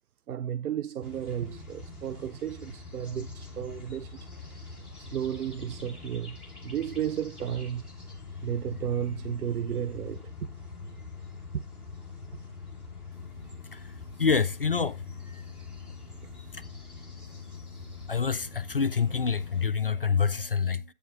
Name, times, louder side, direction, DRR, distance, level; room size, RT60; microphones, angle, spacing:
voice 1, 0.3-4.3 5.0-6.4 6.6-7.8 8.4-10.5 11.5-11.6 16.2-16.3, right 10 dB, 75° right, 0.5 m, -33 dB
sound 1, 1.0-19.7, left 4 dB, ahead, 1.4 m, -43 dB
voice 2, 14.2-15.0 16.5-16.6 18.1-20.8, left 5 dB, 40° left, 0.4 m, -27 dB
11.0 x 8.4 x 2.6 m
figure-of-eight pair, 145°, 44 cm